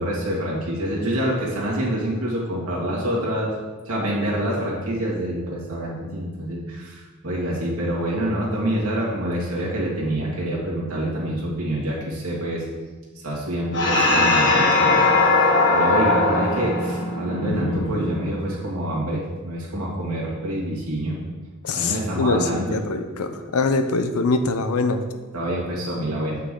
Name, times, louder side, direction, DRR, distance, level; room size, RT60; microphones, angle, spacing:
voice 1, 0.0-3.5 3.8-12.7 13.2-15.2 15.7-21.2 21.7-22.8 25.3-26.4, right 1 dB, 75° right, -4 dB, 2.2 m, -26 dB
sound 1, 13.7-18.5, left 2 dB, 55° left, 1.5 m, -20 dB
voice 2, 21.6-25.0, left 3 dB, 80° left, 8 dB, 0.7 m, -23 dB
8.4 x 5.7 x 3.8 m, 1.3 s
head